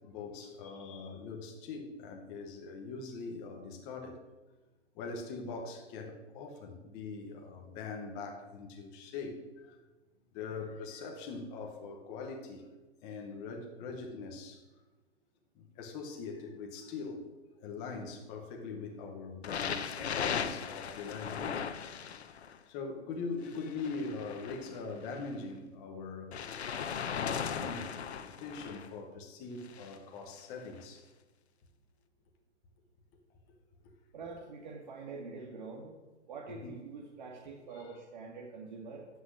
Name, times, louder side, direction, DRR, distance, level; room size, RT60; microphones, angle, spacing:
voice 1, 0.0-4.2 5.0-9.7 10.3-12.6 13.0-14.6 15.6-17.2 17.6-21.7 22.7-26.5 27.0-31.0 36.5-36.7 37.7-37.9, left 4 dB, 10° left, 2 dB, 0.8 m, -42 dB
sound 1, 19.4-22.6 23.5-25.3 26.3-28.9 29.6-30.0 30.8-30.9, left 7 dB, 65° left, 1.1 m, -38 dB
voice 2, 34.1-35.9 36.2-39.1, right 4 dB, 40° right, -2 dB, 2.1 m, -45 dB
14.5 x 6.0 x 9.8 m, 1.2 s
hypercardioid pair, 175°, 35 cm